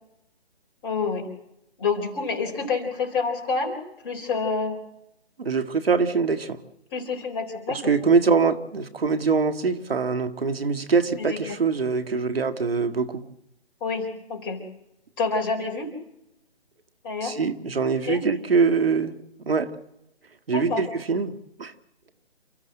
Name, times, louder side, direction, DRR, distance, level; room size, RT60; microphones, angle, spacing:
voice 1, 0.8-1.3 1.8-3.8 4.0-4.8 6.9-7.9 11.2-11.6 13.8-14.6 15.2-15.9 17.0-17.4 18.1-18.2 20.5-20.9, left 4 dB, 25° left, 2 dB, 3.8 m, -28 dB
voice 2, 5.4-6.6 7.7-13.2 17.2-19.1 19.5-19.7 20.5-21.3 21.6-21.7, right 5 dB, 65° right, 9 dB, 1.9 m, -23 dB
29.5 x 13.5 x 7.8 m, 0.83 s
figure-of-eight pair, 145°, 31 cm